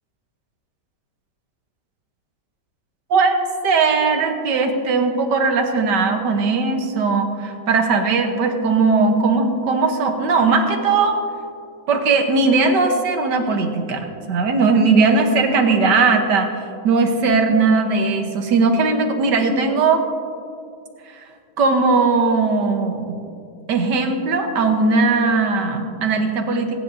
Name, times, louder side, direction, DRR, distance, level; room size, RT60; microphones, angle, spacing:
voice 1, 3.6-11.2 11.9-16.5 16.8-20.0 21.1-21.2 21.6-23.2 23.7-26.8, right 4 dB, 75° right, 4 dB, 1.8 m, -18 dB
22.5 x 9.6 x 2.7 m, 2.4 s
omnidirectional pair, 1.9 m